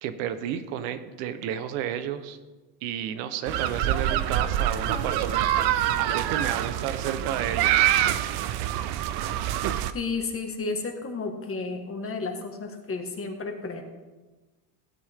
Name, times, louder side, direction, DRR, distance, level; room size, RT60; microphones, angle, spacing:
voice 1, 0.0-2.4 2.8-7.9, right 9 dB, 75° right, 11 dB, 1.2 m, -32 dB
sound 1, 3.5-9.9, right 11 dB, 60° right, 0.8 m, -25 dB
voice 2, 9.9-13.8, left 4 dB, 30° left, 4 dB, 1.9 m, -32 dB
16.5 x 8.7 x 3.7 m, 1.2 s
supercardioid pair, 110°, 46 cm